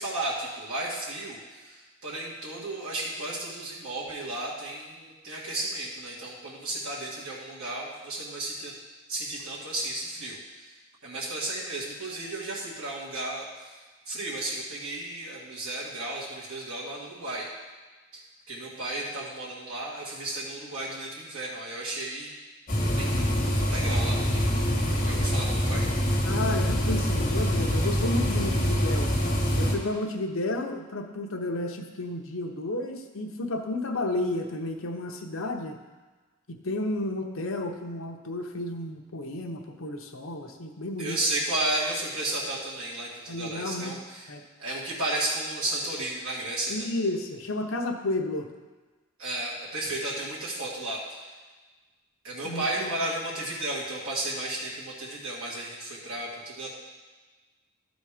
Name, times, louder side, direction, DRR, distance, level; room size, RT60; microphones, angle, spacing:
voice 1, 0.0-8.7 9.1-10.8 11.0-17.5 18.1-22.3 23.0-23.3 23.7-24.4 25.0-25.8 41.0-44.3 44.6-46.9 49.2-51.3 52.2-56.7, right 1 dB, 80° right, -8 dB, 1.8 m, -33 dB
sound 1, 22.7-29.7, equal, 35° left, 1.6 m, -25 dB
voice 2, 26.2-29.1 29.6-35.8 36.5-41.2 43.3-44.0 44.3-44.4 46.7-48.5 52.4-52.9, left 2 dB, 80° left, 3 dB, 0.9 m, -32 dB
12.5 x 4.1 x 5.0 m, 1.3 s
head